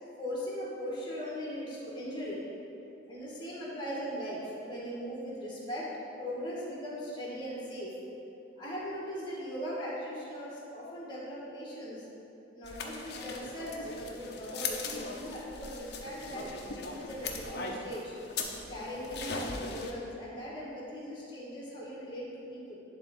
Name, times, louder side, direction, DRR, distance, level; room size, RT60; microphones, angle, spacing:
voice 1, 0.2-2.4 3.1-5.9 6.2-7.9 8.6-12.1 12.5-18.1 18.7-22.8, equal, 25° left, -6 dB, 1.7 m, -39 dB
sound 1, 12.6-19.9, left 4 dB, 60° left, 0.7 m, -39 dB
10.5 x 3.7 x 4.3 m, 2.8 s
head